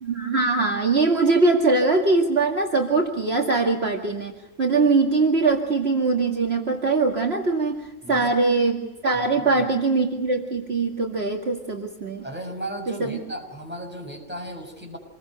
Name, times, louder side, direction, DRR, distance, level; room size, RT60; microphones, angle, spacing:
voice 1, 0.0-4.3 4.6-12.2 12.9-13.2, right 3 dB, 55° right, 0 dB, 2.4 m, -22 dB
voice 2, 12.2-15.0, right 1 dB, 10° right, 1 dB, 6.6 m, -35 dB
28.0 x 22.0 x 6.6 m, 1.1 s
omnidirectional pair, 1.3 m